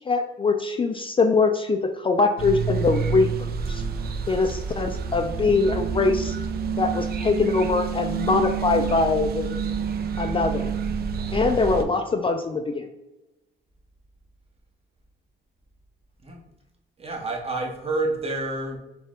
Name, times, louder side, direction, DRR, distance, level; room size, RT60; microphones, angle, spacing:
voice 1, 0.1-3.3 3.7-3.8 4.3-6.3 6.8-9.5 10.2-10.7 11.3-12.8, left 4 dB, 25° left, 6 dB, 0.4 m, -22 dB
sound 1, 2.4-11.8, right 6 dB, 50° right, 0.5 m, -28 dB
voice 2, 17.0-18.8, right 2 dB, 30° right, 2 dB, 0.9 m, -28 dB
4.2 x 2.3 x 3.6 m, 0.98 s
cardioid pair, 90°, 20 cm